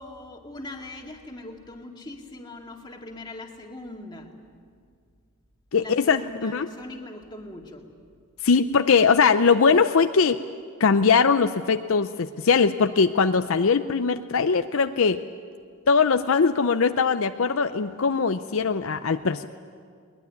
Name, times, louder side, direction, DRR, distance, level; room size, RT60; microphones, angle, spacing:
voice 1, 0.0-4.4 5.8-7.9, left 2 dB, 20° left, 1 dB, 2.2 m, -41 dB
voice 2, 5.7-6.7 8.4-10.4 10.8-15.2 15.9-19.5, left 5 dB, 65° left, 9 dB, 0.6 m, -21 dB
21.5 x 20.5 x 9.5 m, 2.1 s
head